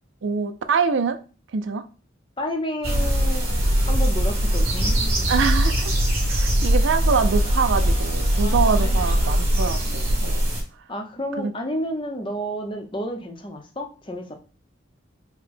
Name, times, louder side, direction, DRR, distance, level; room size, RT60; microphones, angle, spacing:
voice 1, 0.2-1.2 1.5-1.9 5.3-5.9 6.2-10.5 11.4-11.5, right 5 dB, 75° right, 0.4 m, -24 dB
voice 2, 2.4-5.3 8.4-9.0 10.9-14.3, equal, 25° left, 0.6 m, -31 dB
sound 1, 2.8-10.6, equal, 35° right, 1.8 m, -21 dB
4.6 x 2.1 x 4.1 m
head